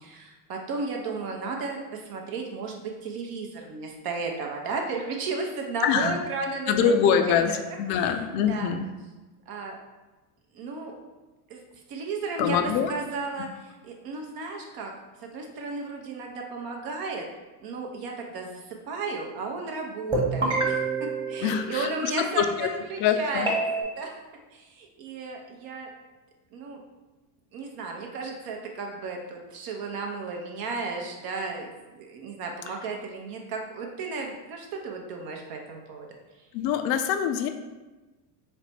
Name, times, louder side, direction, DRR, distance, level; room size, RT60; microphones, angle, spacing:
voice 1, 0.0-7.3 7.9-8.1 8.5-8.7 9.5-9.8 10.5-10.9 11.5-11.6 11.9-12.6 12.9-13.5 13.8-14.9 15.3-17.3 17.6-24.2 24.5-25.9 26.5-26.8 27.5-36.1, right 4 dB, 50° right, 1 dB, 0.6 m, -34 dB
voice 2, 5.8-6.1 6.7-8.9 12.4-12.9 21.4-22.7 23.0-23.5 36.5-37.5, left 8 dB, 55° left, 7 dB, 0.5 m, -24 dB
sound 1, 20.1-22.3 23.5-23.8, right 3 dB, 10° right, 1.0 m, -27 dB
4.2 x 2.1 x 4.2 m, 1.2 s
supercardioid pair, 110°, 46 cm